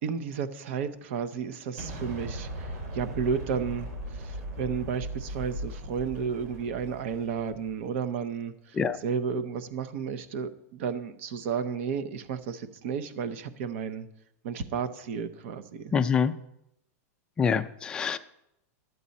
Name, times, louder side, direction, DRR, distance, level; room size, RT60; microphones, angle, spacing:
voice 1, 0.0-14.1 14.4-15.9, right 6 dB, 55° right, 11 dB, 0.8 m, -32 dB
Explosion, 1.8-7.8, right 1 dB, 90° right, 3.7 m, -38 dB
voice 2, 15.9-16.3 17.4-18.2, left 6 dB, 10° left, 8 dB, 0.3 m, -25 dB
11.5 x 8.2 x 4.2 m, 0.81 s
supercardioid pair, 170°, 8 cm